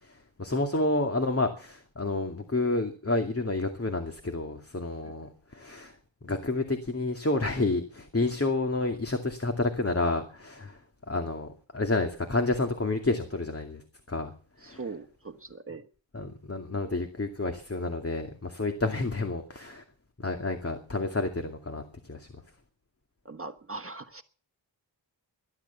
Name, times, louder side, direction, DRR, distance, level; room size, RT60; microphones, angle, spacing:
voice 1, 0.0-5.9 6.2-10.8 11.1-11.5 11.7-13.8 14.1-14.3 14.6-14.8 16.1-19.8 20.2-22.3, left 2 dB, 30° left, 5 dB, 2.4 m, -30 dB
voice 2, 14.6-15.9 23.2-24.2, right 3 dB, 30° right, 7 dB, 1.4 m, -40 dB
17.5 x 11.5 x 7.1 m, 0.43 s
cardioid pair, 55°, 46 cm